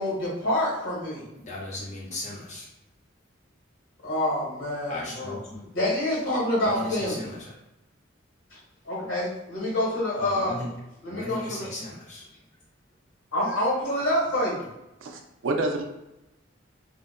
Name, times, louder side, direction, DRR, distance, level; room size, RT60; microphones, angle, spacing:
voice 1, 0.0-1.2 4.0-5.4 5.7-7.3 8.8-10.6 11.0-11.7 13.3-14.6, left 1 dB, 90° left, -6 dB, 1.3 m, -27 dB
voice 2, 1.3-2.7 4.9-5.7 6.6-7.6 10.2-10.7 11.1-12.2, left 2 dB, 40° left, -5 dB, 0.7 m, -36 dB
voice 3, 15.0-15.8, right 2 dB, 85° right, 4 dB, 0.4 m, -28 dB
2.6 x 2.1 x 2.4 m, 0.93 s
head